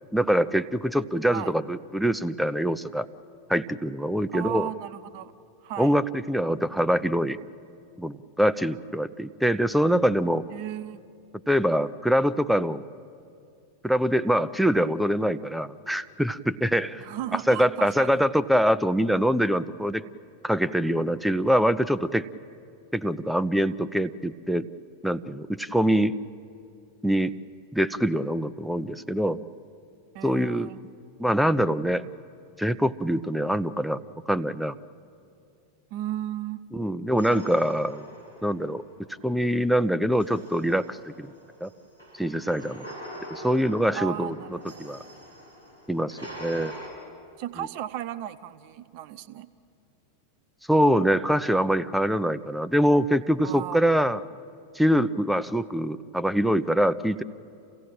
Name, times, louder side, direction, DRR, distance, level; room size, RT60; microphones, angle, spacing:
voice 1, 0.1-3.1 3.5-4.7 5.8-7.4 8.0-10.5 11.5-12.8 13.8-17.1 17.3-20.0 20.4-22.3 22.9-24.7 25.0-26.1 27.0-27.3 27.7-29.4 30.2-30.7 31.2-32.0 32.6-34.0 34.3-34.8 36.7-38.1 38.4-38.8 39.2-41.3 41.6-41.7 42.2-42.9 43.3-45.0 45.9-46.7 47.6-47.7 50.7-54.2 54.7-57.2, equal, ahead, 13 dB, 0.6 m, -24 dB
voice 2, 4.3-5.3 5.6-5.9 10.5-11.0 17.0-18.2 30.1-30.8 35.9-36.6 43.9-44.6 47.4-49.5 53.4-53.8, right 12 dB, 45° right, 12 dB, 0.8 m, -35 dB
sound 1, 37.2-39.2 40.1-46.9, equal, 85° left, 7.1 m, -44 dB
27.0 x 16.5 x 8.9 m, 2.5 s
figure-of-eight pair, 90°, 0 cm